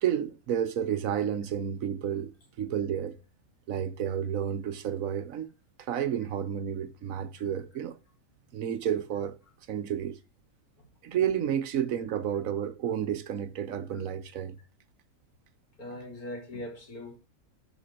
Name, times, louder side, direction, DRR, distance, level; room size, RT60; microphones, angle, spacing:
voice 1, 0.0-3.2 3.7-5.5 5.8-8.0 8.5-9.4 9.7-10.2 11.0-14.6, right 9 dB, 70° right, 1.2 m, -31 dB
voice 2, 15.8-17.2, left 1 dB, 90° left, 3.3 m, -40 dB
10.0 x 5.0 x 4.4 m
omnidirectional pair, 1.5 m